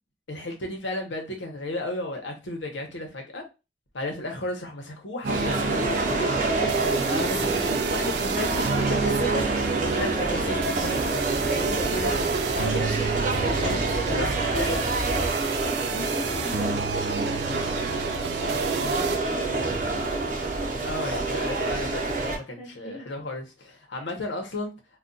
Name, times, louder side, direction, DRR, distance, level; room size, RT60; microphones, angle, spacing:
voice 1, 0.3-3.4 3.9-12.9 13.2-14.8 20.8-24.7, left 1 dB, 85° left, 0.9 m, -34 dB
sound 1, 5.2-19.2, right 5 dB, 65° right, 0.3 m, -30 dB
sound 2, 5.3-22.4, right 2 dB, 45° right, 0.7 m, -27 dB
sound 3, 8.3-15.3, equal, 60° left, 0.9 m, -36 dB
voice 2, 13.0-13.5 14.4-14.6 15.1-17.6 18.3-20.4 22.6-23.1 23.9-24.1, left 1 dB, 30° left, 0.7 m, -41 dB
2.3 x 2.3 x 3.8 m
head